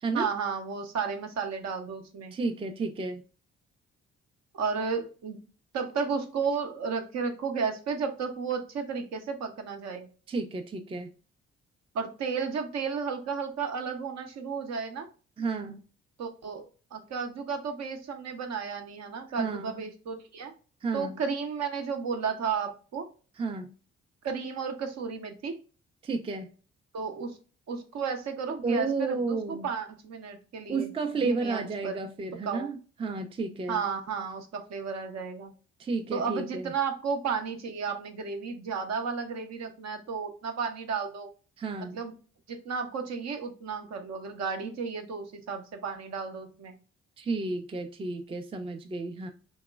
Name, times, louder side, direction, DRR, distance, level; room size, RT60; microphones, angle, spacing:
voice 1, 0.1-2.3 4.5-5.4 5.7-10.1 11.9-15.1 16.2-20.5 20.9-23.1 24.2-25.6 26.9-27.4 27.7-32.1 32.4-32.7 33.7-35.5 36.1-41.3 41.8-42.1 42.5-46.7, right 5 dB, 50° right, 0.7 m, -33 dB
voice 2, 2.3-3.2 10.3-11.1 15.4-15.8 19.4-19.8 20.8-21.2 23.4-23.7 26.0-26.5 28.6-29.7 30.7-33.8 35.8-36.7 41.6-42.0 47.2-49.3, right 3 dB, 15° right, 0.4 m, -32 dB
3.0 x 2.9 x 2.3 m
hypercardioid pair, 40°, 34 cm